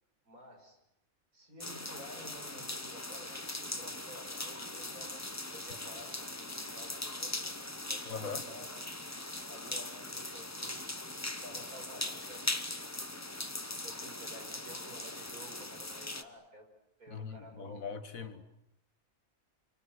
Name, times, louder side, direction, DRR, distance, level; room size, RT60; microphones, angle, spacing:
voice 1, 0.3-0.8 1.3-7.4 7.9-8.7 9.5-10.9 11.2-12.4 13.6-16.7 17.0-17.9 18.1-18.3, right 1 dB, 80° right, 6.1 m, -52 dB
sound 1, 1.6-16.2, left 2 dB, 15° left, 1.0 m, -40 dB
voice 2, 8.1-8.5 17.1-18.4, left 5 dB, 70° left, 2.0 m, -41 dB
28.5 x 24.5 x 8.0 m
omnidirectional pair, 1.5 m